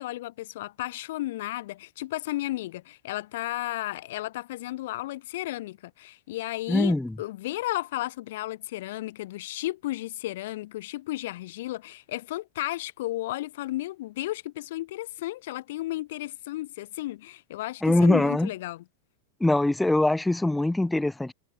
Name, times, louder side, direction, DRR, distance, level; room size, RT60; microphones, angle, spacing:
voice 1, 0.0-18.8, left 16 dB, 55° left, 3.4 m, -33 dB
voice 2, 6.7-7.1 17.8-18.5 19.4-21.3, left 2 dB, 5° left, 2.8 m, -22 dB
figure-of-eight pair, 90°, 0 cm